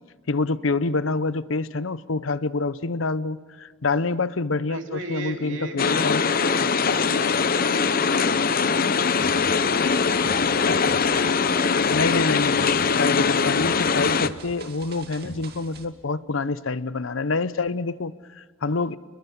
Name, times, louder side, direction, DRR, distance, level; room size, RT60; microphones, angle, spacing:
voice 1, 0.3-6.2 11.9-19.0, left 3 dB, 80° left, 16 dB, 0.8 m, -26 dB
voice 2, 4.7-11.9, right 2 dB, 70° right, 3 dB, 3.2 m, -38 dB
sound 1, 5.8-14.3, left 5 dB, 50° left, 0.7 m, -22 dB
sound 2, 9.2-15.8, right 2 dB, 55° right, 2.3 m, -42 dB
29.0 x 22.0 x 7.2 m, 1.5 s
head